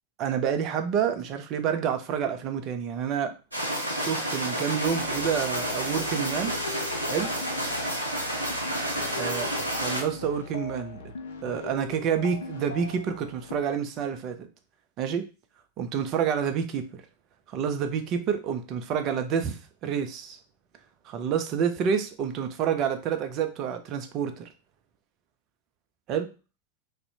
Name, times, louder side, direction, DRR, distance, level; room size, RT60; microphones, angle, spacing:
voice 1, 0.2-3.3 4.0-6.5 7.1-7.3 9.2-11.0 11.4-14.5 15.0-15.2 15.8-17.0 17.5-20.4 21.1-24.5 26.1-26.3, right 7 dB, 35° right, 7 dB, 0.4 m, -28 dB
sound 1, 3.5-10.0, right 1 dB, 85° right, 0.6 m, -30 dB
sound 2, 4.8-13.6, left 4 dB, 65° left, 0.4 m, -40 dB
2.5 x 2.1 x 2.7 m, 0.32 s
figure-of-eight pair, 90°, 0 cm